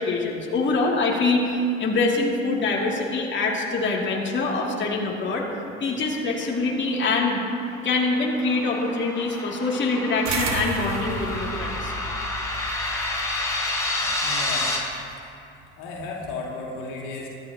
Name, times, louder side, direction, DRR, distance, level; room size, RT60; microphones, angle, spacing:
voice 1, 0.0-5.5 5.8-7.4 7.8-11.9, left 3 dB, 30° left, -3 dB, 2.7 m, -24 dB
sound 1, 7.2-14.8, left 2 dB, 10° left, 3.7 m, -30 dB
sound 2, 10.2-15.2, right 4 dB, 45° right, 1.7 m, -34 dB
voice 2, 14.0-14.7 15.8-17.3, left 3 dB, 60° left, -3 dB, 2.5 m, -34 dB
23.5 x 11.5 x 2.9 m, 2.7 s
figure-of-eight pair, 60°, 36 cm